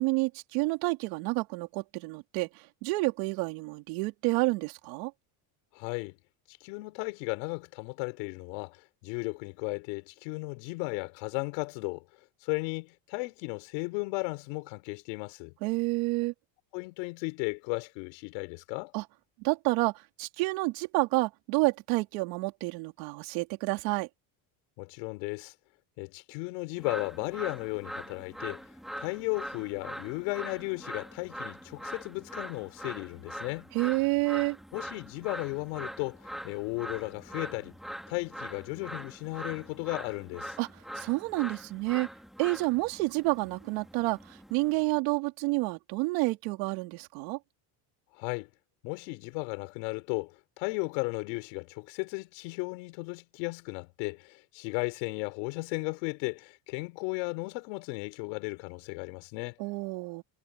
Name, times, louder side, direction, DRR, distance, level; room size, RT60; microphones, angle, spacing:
voice 1, 0.0-2.5 2.8-5.1 15.6-16.3 18.9-19.0 19.4-24.1 33.7-34.6 40.6-40.7 40.9-42.1 42.4-47.4 59.6-60.2, right 24 dB, 75° right, 3.1 m, -29 dB
voice 2, 5.7-6.1 6.6-12.0 12.4-15.5 16.7-18.9 24.8-25.5 26.0-28.6 29.0-33.7 34.7-37.8 38.1-40.5 48.2-48.5 48.8-59.6, left 29 dB, 85° left, 4.7 m, -35 dB
sound 1, 26.8-45.0, equal, ahead, 1.7 m, -43 dB
cardioid pair, 170°, 50 cm